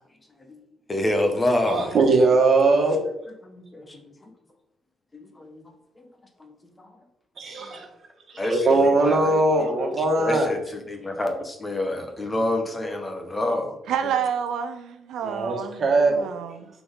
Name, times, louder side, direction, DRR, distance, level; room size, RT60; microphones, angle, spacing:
voice 1, 0.9-1.9 3.4-4.1 5.1-5.6 6.0-6.1 6.4-6.5 6.8-6.9 8.4-9.7 10.2-10.6 10.9-13.8, left 1 dB, 15° left, 0.9 m, -27 dB
voice 2, 1.7-3.0 7.4-7.8 8.4-10.5 15.2-16.3, right 3 dB, 40° right, 1.5 m, -20 dB
voice 3, 13.9-15.8 16.1-16.7, right 8 dB, 80° right, 0.6 m, -29 dB
5.9 x 4.0 x 5.1 m
cardioid pair, 145°, 0 cm